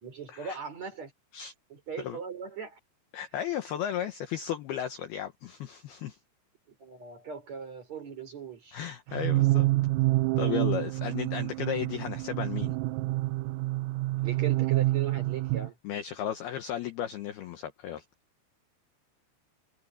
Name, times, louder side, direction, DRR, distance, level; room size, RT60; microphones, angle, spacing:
voice 1, 0.0-1.1 1.7-2.8 6.7-8.8 9.1-9.2 14.2-15.8, right 6 dB, 35° right, 5.0 m, -39 dB
voice 2, 3.1-6.2 8.7-9.7 10.4-12.8 15.8-18.0, left 10 dB, 75° left, 2.4 m, -34 dB
sound 1, 9.1-15.7, right 19 dB, 90° right, 3.4 m, -27 dB
omnidirectional pair, 5.9 m